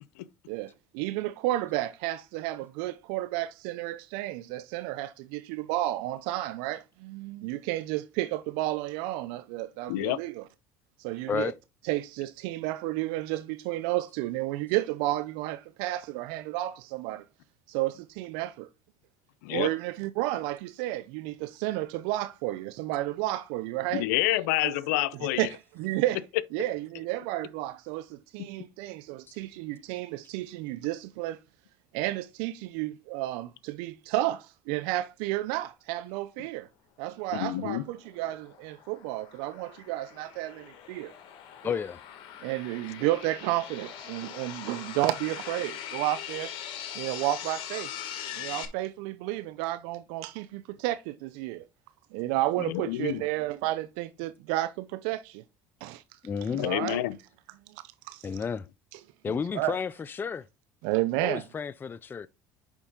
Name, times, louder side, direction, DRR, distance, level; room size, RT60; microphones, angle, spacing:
voice 1, 0.5-10.4 11.0-11.5 11.9-17.2 17.7-18.7 19.5-24.0 24.6-24.7 25.4-26.2 26.5-31.4 31.9-36.7 37.0-41.1 42.4-46.5 46.9-47.9 48.3-51.6 52.1-55.4 55.8-56.0 56.5-57.0 57.7-58.3 58.9-59.0 59.3-59.8 60.8-61.4, right 16 dB, 80° right, 0.5 m, -32 dB
voice 2, 23.9-25.5 37.3-37.8 52.6-53.2 56.5-57.2, left 16 dB, 90° left, 0.5 m, -28 dB
sound 1, 37.8-48.7, left 10 dB, 65° left, 1.6 m, -41 dB
voice 3, 41.6-42.0 56.2-56.7 58.2-58.7 59.2-60.5 61.2-62.3, left 6 dB, 25° left, 0.4 m, -32 dB
7.3 x 5.4 x 3.8 m
supercardioid pair, 95°, 9 cm